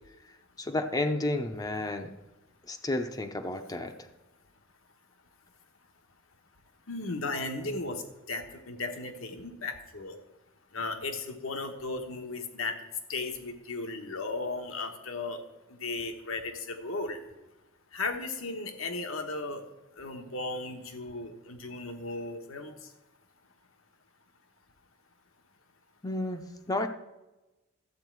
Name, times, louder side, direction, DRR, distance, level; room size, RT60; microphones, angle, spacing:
voice 1, 0.6-2.1 2.7-4.1 26.0-26.4 26.7-26.9, left 2 dB, 20° left, 6 dB, 0.6 m, -31 dB
voice 2, 6.9-8.0 8.3-10.2 10.7-12.7 13.1-15.4 15.7-17.2 17.9-19.6 20.0-22.7, left 3 dB, 75° left, 6 dB, 1.2 m, -35 dB
12.5 x 8.3 x 4.6 m, 1.0 s
head